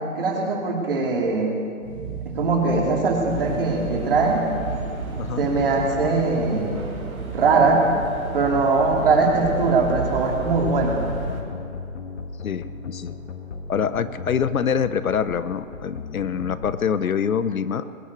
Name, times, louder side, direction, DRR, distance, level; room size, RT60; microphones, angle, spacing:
voice 1, 0.2-1.6 2.4-4.5 5.4-6.8 7.3-7.9 8.3-11.0, right 3 dB, 40° right, 0 dB, 2.5 m, -21 dB
sound 1, 1.8-11.2, right 5 dB, 20° right, 3.5 m, -35 dB
sound 2, 3.3-11.4, right 3 dB, 85° right, 3.1 m, -34 dB
sound 3, 9.7-16.7, left 4 dB, 55° left, 1.5 m, -36 dB
voice 2, 12.4-13.2 13.7-17.8, left 7 dB, 75° left, 14 dB, 0.8 m, -25 dB
21.0 x 7.6 x 8.0 m, 2.4 s
hypercardioid pair, 160°, 42 cm